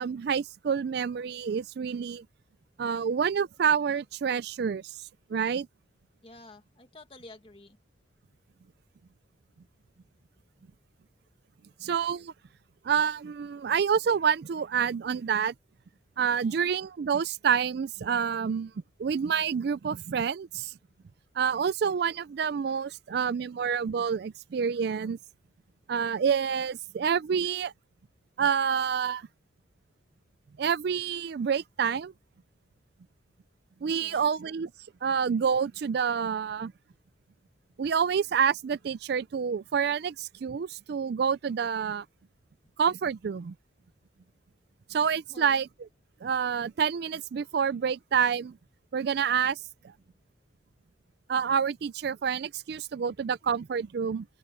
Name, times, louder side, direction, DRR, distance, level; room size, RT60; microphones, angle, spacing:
voice 1, 0.0-2.3 2.8-5.7 11.8-12.3 12.8-15.5 16.2-18.7 19.0-20.7 21.4-25.2 25.9-27.7 28.4-29.3 30.6-32.1 33.8-34.7 35.0-36.7 37.8-42.1 42.8-43.5 44.9-45.7 46.2-48.6 48.9-49.6 49.8-49.9 51.3-54.3, right 7 dB, 55° right, 0.4 m, -28 dB
voice 2, 6.2-7.8 10.6-10.7 16.4-16.7 34.0-34.3 45.3-45.6, left 2 dB, 30° left, 2.0 m, -51 dB
open air
head